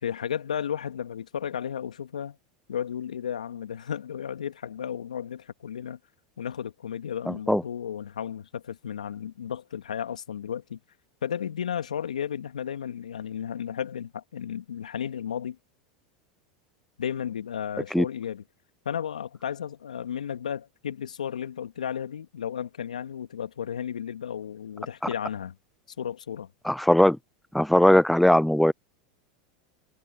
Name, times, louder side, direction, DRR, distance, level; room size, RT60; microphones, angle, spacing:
voice 1, 0.0-2.4 2.7-6.0 6.4-10.8 11.2-15.6 17.0-18.4 18.9-25.6 26.0-26.5, left 8 dB, 85° left, 2.2 m, -33 dB
voice 2, 7.3-7.6 17.9-18.0 26.6-27.2 27.5-28.7, left 1 dB, ahead, 0.3 m, -19 dB
hypercardioid pair, 90°, 4 cm